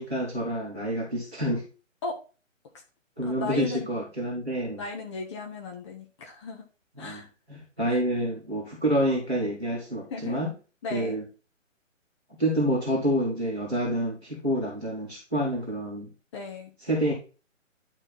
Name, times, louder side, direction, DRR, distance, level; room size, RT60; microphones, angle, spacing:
voice 1, 0.0-1.6 3.2-4.8 7.0-10.5 10.9-11.2 12.4-16.1 16.9-17.1, right 1 dB, ahead, -19 dB, 0.5 m, -28 dB
voice 2, 3.2-3.9 4.8-6.7 7.0-7.3 7.9-8.0 10.1-10.4 10.8-11.2 16.3-16.7, left 3 dB, 20° left, 2 dB, 1.4 m, -36 dB
10.5 x 4.4 x 4.1 m, 0.35 s
figure-of-eight pair, 140°, 40 cm